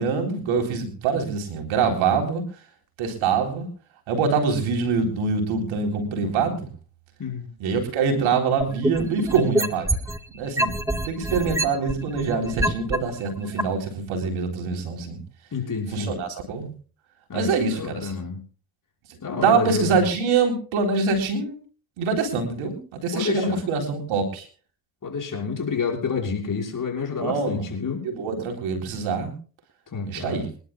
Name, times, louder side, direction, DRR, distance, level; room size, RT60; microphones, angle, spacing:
voice 1, 0.0-2.4 3.0-3.7 4.1-6.7 7.6-10.0 10.3-15.2 15.9-16.7 17.3-18.2 19.3-21.6 22.0-24.5 27.2-27.6 28.0-29.3 30.1-30.5, right 5 dB, 85° right, 3 dB, 3.9 m, -24 dB
sound 1, 8.6-10.2 10.6-13.0 13.6-13.7, right 1 dB, 5° right, 1.7 m, -24 dB
voice 2, 15.5-16.2 17.3-18.4 19.2-20.1 23.1-23.6 25.0-28.1 29.9-30.4, left 5 dB, 40° left, 0 dB, 6.0 m, -29 dB
27.0 x 11.5 x 2.3 m, 0.39 s
supercardioid pair, 75°, 47 cm